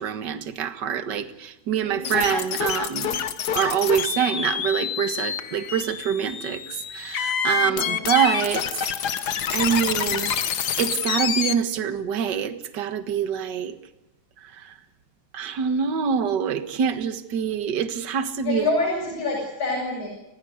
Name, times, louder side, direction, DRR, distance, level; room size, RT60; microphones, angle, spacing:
voice 1, 0.0-3.2 3.5-6.6 6.9-8.7 9.5-13.7 15.3-18.6, right 8 dB, 45° right, 10 dB, 1.7 m, -25 dB
voice 2, 1.8-2.4 7.5-8.1 18.4-20.1, left 2 dB, 80° left, -3 dB, 8.8 m, -27 dB
sound 1, 2.0-11.5, left 8 dB, 60° left, 1.0 m, -27 dB
30.0 x 16.0 x 8.1 m, 0.97 s
omnidirectional pair, 3.4 m